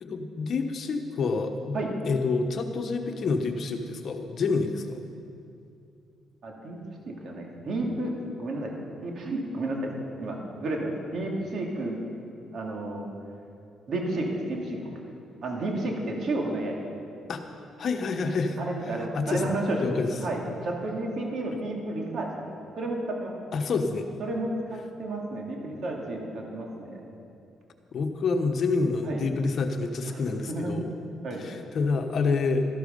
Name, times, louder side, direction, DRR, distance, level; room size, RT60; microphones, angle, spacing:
voice 1, 0.0-1.8 2.0-5.0 17.3-17.4 17.8-18.6 19.1-19.5 19.8-20.1 23.5-24.1 27.9-30.9 31.4-32.6, left 4 dB, 55° left, 5 dB, 1.2 m, -27 dB
voice 2, 6.4-6.8 7.1-9.9 10.2-12.1 12.5-13.0 13.9-15.0 15.4-16.9 18.6-22.4 22.8-23.3 24.2-27.0 29.0-29.2 30.0-30.7 31.2-31.4, right 2 dB, 60° right, 0 dB, 2.7 m, -32 dB
13.0 x 13.0 x 5.4 m, 2.6 s
cardioid pair, 90°, 0 cm